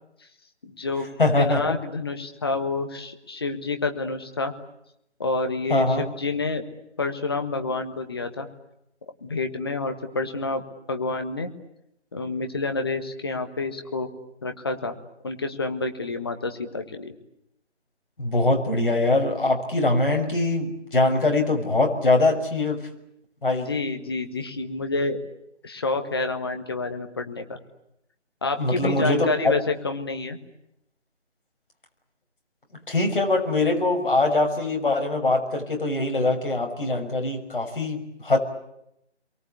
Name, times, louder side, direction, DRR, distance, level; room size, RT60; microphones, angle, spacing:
voice 1, 0.6-1.1 1.4-4.5 5.2-6.6 7.0-8.5 9.2-10.6 10.9-11.5 12.1-14.1 14.4-14.9 15.2-17.1 23.6-25.2 25.6-27.6 28.4-30.4, left 3 dB, 20° left, 7 dB, 1.5 m, -28 dB
voice 2, 1.2-1.6 5.7-6.0 18.2-22.8 23.4-23.7 28.6-29.3 32.9-38.4, left 2 dB, 50° left, 3 dB, 6.3 m, -22 dB
29.5 x 23.5 x 8.5 m, 0.82 s
figure-of-eight pair, 165°, 35 cm